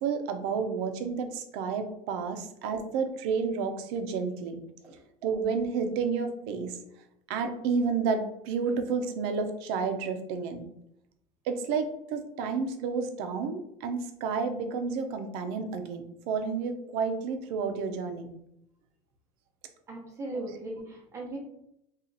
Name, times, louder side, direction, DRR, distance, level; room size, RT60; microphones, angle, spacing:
voice 1, 0.0-4.6 5.2-6.8 7.3-10.7 11.5-18.3, right 5 dB, 75° right, 7 dB, 0.5 m, -31 dB
voice 2, 19.9-21.4, right 2 dB, 20° right, -1 dB, 0.8 m, -38 dB
2.8 x 2.4 x 3.8 m, 0.78 s
cardioid pair, 175°, 14 cm